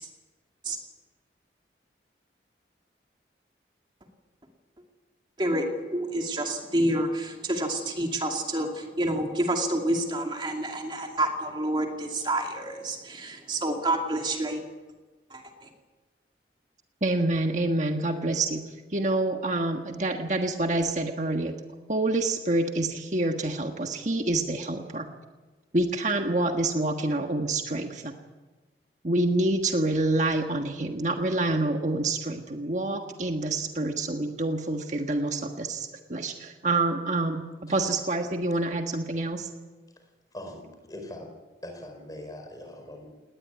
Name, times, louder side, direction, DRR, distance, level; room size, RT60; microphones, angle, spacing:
voice 1, 5.4-14.6 15.3-15.4, right 1 dB, 25° right, 2 dB, 2.5 m, -28 dB
voice 2, 17.0-21.6 21.9-25.1 25.7-28.1 29.0-39.5, right 2 dB, 40° right, 4 dB, 1.5 m, -27 dB
voice 3, 40.3-41.3 41.6-43.1, left 1 dB, 20° left, 5 dB, 4.6 m, -41 dB
19.5 x 19.5 x 9.5 m, 1.3 s
head